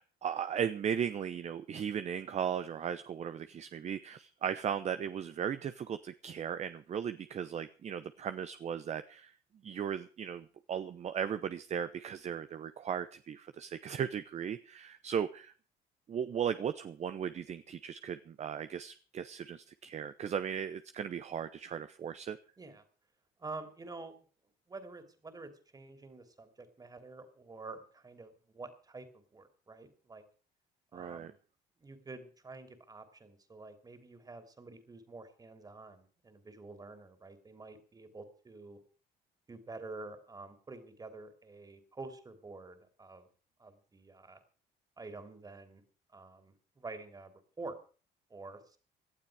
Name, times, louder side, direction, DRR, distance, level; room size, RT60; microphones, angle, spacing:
voice 1, 0.0-9.3 9.6-15.5 16.1-22.4 30.9-31.3, right 8 dB, 40° right, 11 dB, 0.8 m, -37 dB
voice 2, 23.4-24.1 24.7-30.2 30.9-31.4 31.8-38.8 39.5-43.3 43.6-44.4 45.0-45.8 46.1-47.3 47.6-47.8 48.3-48.8, right 3 dB, 20° right, 8 dB, 3.1 m, -48 dB
18.0 x 12.0 x 4.9 m, 0.39 s
cardioid pair, 110°, 17 cm